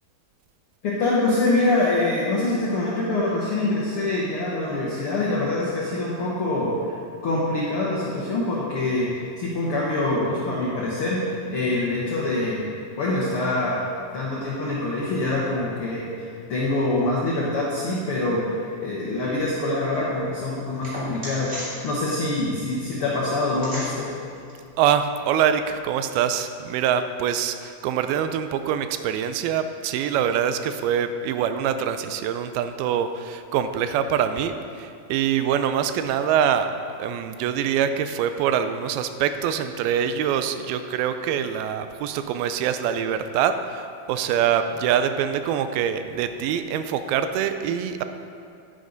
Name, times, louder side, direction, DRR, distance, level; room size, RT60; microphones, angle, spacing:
voice 1, 0.8-7.0 7.2-9.1 9.4-12.7 13.0-13.8 14.1-24.1, left 2 dB, 75° left, -6 dB, 1.3 m, -25 dB
sound 1, 19.0-25.8, right 1 dB, 20° right, 2.4 m, -40 dB
voice 2, 24.8-36.7 37.0-48.0, right 8 dB, 85° right, 9 dB, 2.4 m, -24 dB
10.0 x 9.7 x 4.0 m, 2.4 s
omnidirectional pair, 4.3 m